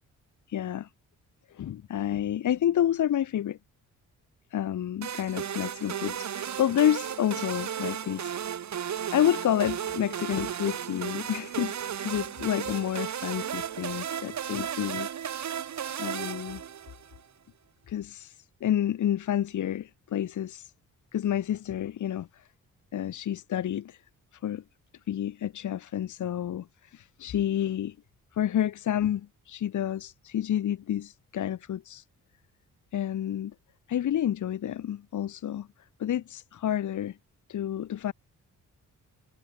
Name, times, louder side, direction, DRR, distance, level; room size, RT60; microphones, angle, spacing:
voice 1, 0.5-0.9 1.5-3.6 4.5-8.3 9.1-15.1 16.0-16.6 17.9-20.7 21.1-22.5 22.9-24.0 24.4-24.6 25.1-27.9 28.3-32.0 32.9-33.5 33.9-35.7 36.0-37.2 37.5-38.1, left 11 dB, 65° left, 1.7 m, -29 dB
sound 1, 5.0-17.2, right 9 dB, 60° right, 3.8 m, -34 dB
wide cardioid pair, 150°, 33 cm